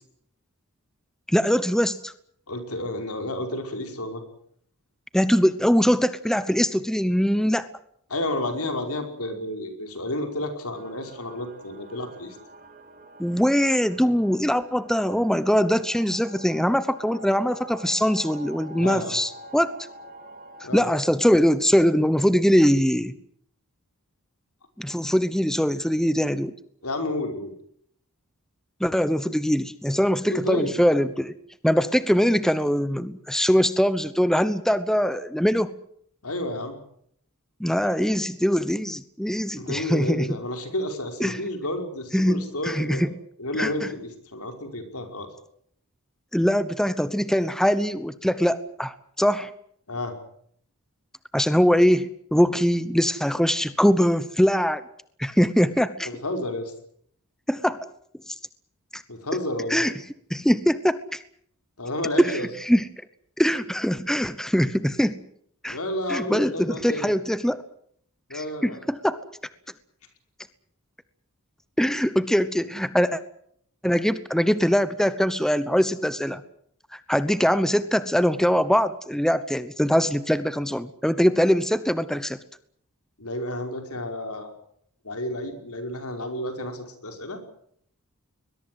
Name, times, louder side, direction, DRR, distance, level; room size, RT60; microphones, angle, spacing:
voice 1, 1.3-2.1 5.1-7.7 13.2-19.7 20.7-23.1 24.8-26.5 28.8-31.3 31.6-35.7 37.6-40.3 41.2-41.4 42.1-43.1 43.6-43.9 46.3-49.5 51.3-54.8 55.2-56.1 57.5-57.8 58.9-59.0 59.7-59.9 60.3-61.2 62.2-62.4 62.7-62.8 63.4-65.2 65.6-65.8 66.1-67.6 68.3-69.2 71.8-73.2 73.8-76.4 77.1-82.4, equal, ahead, 13 dB, 0.9 m, -22 dB
voice 2, 2.5-4.2 8.1-12.4 18.8-19.2 20.6-20.9 26.8-27.5 30.3-30.7 36.2-36.8 39.6-43.1 43.4-45.3 49.9-50.1 56.0-56.7 59.1-59.8 61.8-62.5 65.7-67.1 68.3-68.8 83.2-84.5 85.0-87.4, left 1 dB, 75° left, 5 dB, 5.3 m, -31 dB
sound 1, 10.7-20.7, right 2 dB, 40° right, 4.1 m, -45 dB
22.5 x 21.5 x 7.8 m, 0.67 s
head